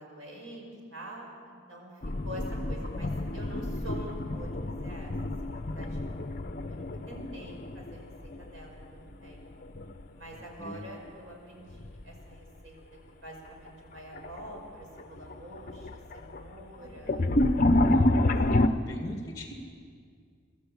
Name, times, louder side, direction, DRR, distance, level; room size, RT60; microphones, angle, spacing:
voice 1, 0.0-5.1 5.4-6.0 6.7-9.4 10.1-12.8 13.2-17.3 18.1-18.4 18.6-18.8, right 1 dB, 90° right, 0 dB, 5.5 m, -46 dB
sound 1, 2.0-8.9 9.1-10.0 11.7-12.0 12.6-12.7 13.7-13.8 14.1-14.6 15.0-18.7, left 1 dB, 40° left, 0.7 m, -29 dB
voice 2, 10.3-10.8 18.3-19.5, left 1 dB, 15° left, 3 dB, 2.0 m, -41 dB
23.0 x 13.0 x 8.6 m, 2.2 s
head